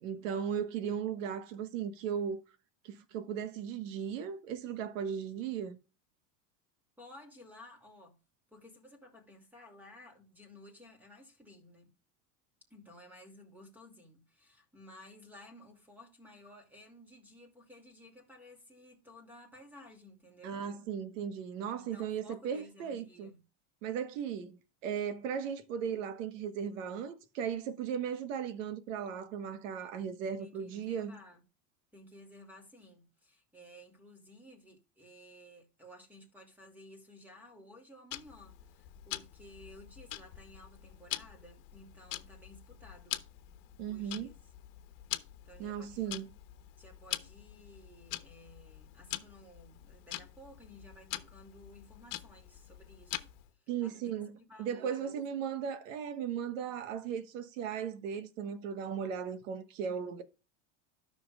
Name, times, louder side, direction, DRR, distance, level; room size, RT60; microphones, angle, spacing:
voice 1, 0.0-2.4 2.8-5.8 20.4-23.3 23.8-31.2 43.8-44.3 45.6-46.3 53.7-60.2, right 8 dB, 85° right, 1.4 m, -37 dB
voice 2, 7.0-8.2 8.5-11.9 12.7-20.6 21.8-23.4 29.8-29.9 30.4-31.4 31.9-43.2 43.9-44.4 45.4-46.0 46.8-53.3 53.5-55.1, left 1 dB, 5° right, 2.5 m, -55 dB
Tick-tock, 38.1-53.5, left 15 dB, 70° left, 1.2 m, -44 dB
13.5 x 6.2 x 2.4 m
supercardioid pair, 150°, 38 cm